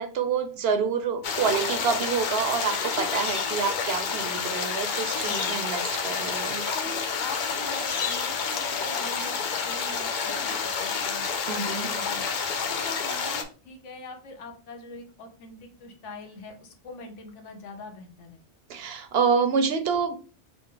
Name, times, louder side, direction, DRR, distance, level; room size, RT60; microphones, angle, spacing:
voice 1, 0.0-6.7 11.5-11.9 18.7-20.2, right 6 dB, 65° right, 10 dB, 0.8 m, -27 dB
sound 1, 1.2-13.4, left 5 dB, 55° left, 0.6 m, -29 dB
voice 2, 5.2-5.6 6.7-9.4 9.6-15.5 15.8-18.4, left 2 dB, 85° left, 4 dB, 1.2 m, -42 dB
5.0 x 2.1 x 3.7 m, 0.37 s
omnidirectional pair, 1.2 m